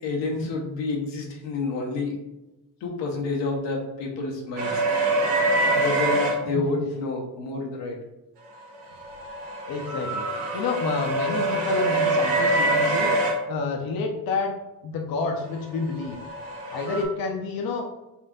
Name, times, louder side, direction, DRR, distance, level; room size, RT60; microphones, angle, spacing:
voice 1, 0.0-2.2 2.8-4.8 5.7-8.0, left 3 dB, 90° left, 0 dB, 1.1 m, -29 dB
sound 1, 4.6-6.3 8.7-13.3 15.7-17.0, right 2 dB, 75° right, 1.2 m, -24 dB
voice 2, 9.7-13.1 13.5-14.5 14.8-16.2 16.7-17.8, left 3 dB, 55° left, 2 dB, 0.7 m, -29 dB
4.4 x 2.5 x 3.6 m, 0.97 s
cardioid pair, 95°, 42 cm